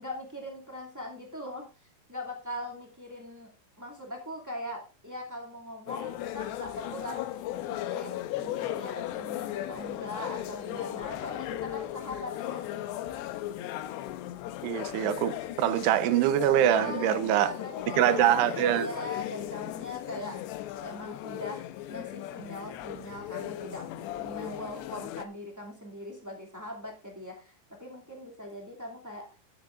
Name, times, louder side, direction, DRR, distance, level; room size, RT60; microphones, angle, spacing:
voice 1, 0.0-12.7 16.7-20.4 20.8-27.5 27.8-29.3, left 1 dB, 15° right, 0.7 m, -41 dB
sound 1, 5.9-25.2, left 13 dB, 80° left, 2.6 m, -37 dB
voice 2, 14.6-17.5 18.0-18.9, right 11 dB, 75° right, 2.7 m, -24 dB
19.5 x 7.9 x 2.5 m
omnidirectional pair, 5.4 m